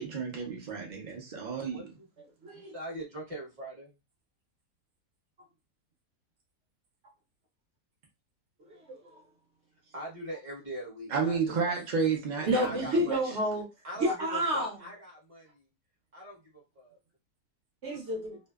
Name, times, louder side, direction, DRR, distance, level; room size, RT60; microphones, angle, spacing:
voice 1, 0.0-1.9 11.1-13.0, right 5 dB, 70° right, 0.4 m, -31 dB
voice 2, 1.6-2.1 2.5-3.9 9.9-11.8 12.5-13.4 13.8-15.7 16.1-17.0, equal, 25° right, 0.9 m, -42 dB
voice 3, 2.4-2.7 8.7-9.1 12.5-13.6 14.0-14.7 17.8-18.4, equal, 55° right, 0.9 m, -30 dB
2.6 x 2.1 x 2.2 m
omnidirectional pair, 1.6 m